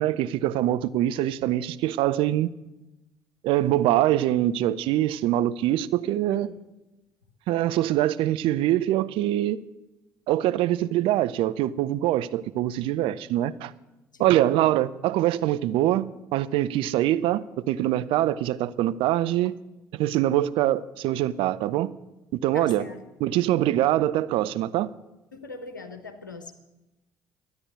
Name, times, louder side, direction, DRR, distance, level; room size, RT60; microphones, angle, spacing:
voice 1, 0.0-2.5 3.4-6.5 7.5-9.6 10.3-13.7 14.2-16.1 16.3-19.5 19.9-21.9 22.3-22.9 23.2-24.9, right 13 dB, 60° right, 0.6 m, -24 dB
voice 2, 22.5-23.0 25.3-26.5, left 3 dB, 90° left, 1.1 m, -41 dB
12.5 x 9.8 x 9.3 m
figure-of-eight pair, 50°, 10 cm